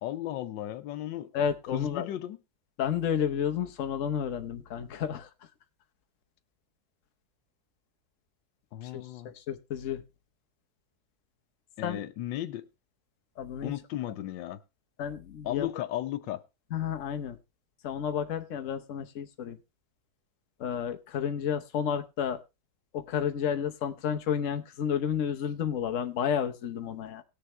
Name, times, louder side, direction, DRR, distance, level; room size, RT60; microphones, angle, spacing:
voice 1, 0.0-1.3 1.7-2.4 8.7-9.3 11.8-12.7 13.6-14.6 15.4-16.4, left 13 dB, 85° left, 1.4 m, -35 dB
voice 2, 1.3-2.1 2.8-5.3 8.8-10.0 11.8-12.0 13.4-13.7 15.0-15.7 16.7-17.4 17.8-19.6 20.6-22.4 22.9-27.2, left 8 dB, 50° left, 1.2 m, -31 dB
19.0 x 6.9 x 3.2 m
omnidirectional pair, 1.9 m